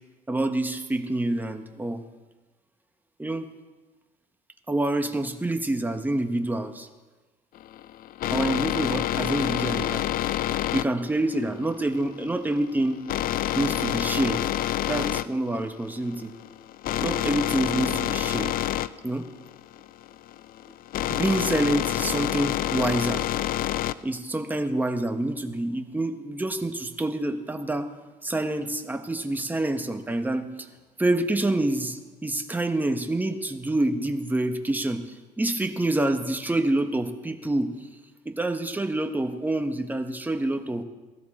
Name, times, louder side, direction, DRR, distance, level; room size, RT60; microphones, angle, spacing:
voice 1, 0.3-2.0 3.2-3.5 4.7-6.9 8.3-10.1 10.7-13.0 13.5-14.5 14.9-16.3 17.0-18.6 19.0-19.3 21.1-23.2 24.0-27.9 28.2-30.7 31.0-37.8 38.2-40.8, right 1 dB, 10° right, 6 dB, 1.1 m, -27 dB
sound 1, 7.6-24.2, left 13 dB, 60° left, 0.4 m, -28 dB
17.0 x 13.0 x 4.3 m, 1.2 s
cardioid pair, 110°, 17 cm